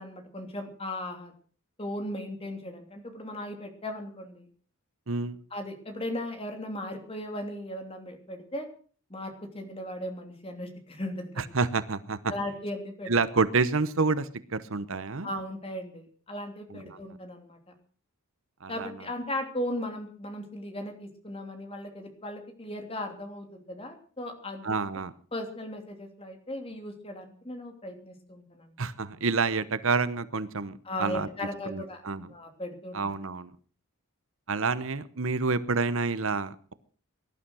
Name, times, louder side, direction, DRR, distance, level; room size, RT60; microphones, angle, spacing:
voice 1, 0.0-1.3 1.8-4.5 5.5-8.7 9.1-11.4 12.3-13.1 15.2-17.7 18.7-24.8 25.3-28.8 30.8-32.0 32.3-33.0, left 1 dB, 25° left, 4 dB, 3.1 m, -37 dB
voice 2, 5.1-5.4 11.4-12.2 13.1-15.3 16.7-17.0 18.6-18.9 24.6-25.1 28.8-31.3 31.6-32.3 32.9-33.5 34.5-36.7, right 4 dB, 65° right, 15 dB, 1.0 m, -28 dB
18.5 x 11.5 x 6.2 m, 0.43 s
head